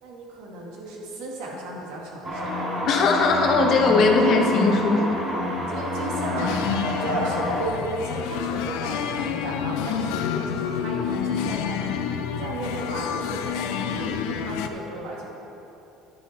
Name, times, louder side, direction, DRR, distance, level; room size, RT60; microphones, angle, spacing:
voice 1, 0.0-2.7 5.7-6.5 6.9-11.8 12.3-15.3, right 2 dB, 70° right, -2 dB, 2.2 m, -34 dB
sound 1, 2.2-7.7, left 1 dB, 25° right, 2.7 m, -27 dB
voice 2, 2.9-5.2, left 4 dB, 45° left, 1 dB, 1.2 m, -20 dB
sound 2, 6.4-14.7, left 8 dB, 80° left, 0.6 m, -28 dB
10.5 x 9.2 x 4.4 m, 2.9 s
cardioid pair, 155°, 0 cm